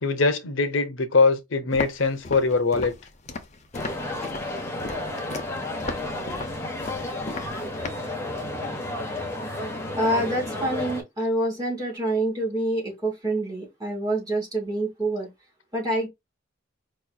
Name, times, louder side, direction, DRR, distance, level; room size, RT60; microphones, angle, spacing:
voice 1, 0.0-2.9, left 4 dB, 80° left, 0.7 m, -22 dB
Walk footsteps, 1.7-8.1, left 3 dB, 35° left, 0.6 m, -36 dB
sound 1, 3.7-11.0, left 1 dB, 15° left, 0.9 m, -32 dB
voice 2, 10.0-15.3 15.7-16.1, right 1 dB, 20° right, 2.4 m, -26 dB
4.7 x 3.0 x 2.2 m
head